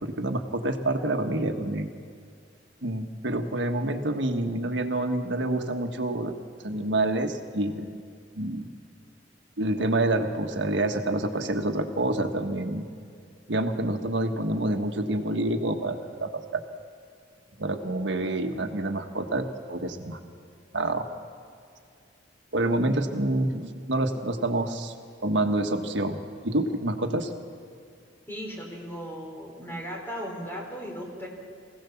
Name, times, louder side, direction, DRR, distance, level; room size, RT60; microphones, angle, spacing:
voice 1, 0.0-1.9 2.8-6.3 6.6-8.0 8.3-8.7 9.6-12.8 13.5-16.6 17.6-20.2 20.7-21.1 22.5-24.9 25.2-26.2 26.4-27.3, right 1 dB, 80° right, 5 dB, 1.5 m, -27 dB
voice 2, 28.3-31.3, equal, 15° left, 0 dB, 3.9 m, -37 dB
24.0 x 17.0 x 7.2 m, 2.3 s
head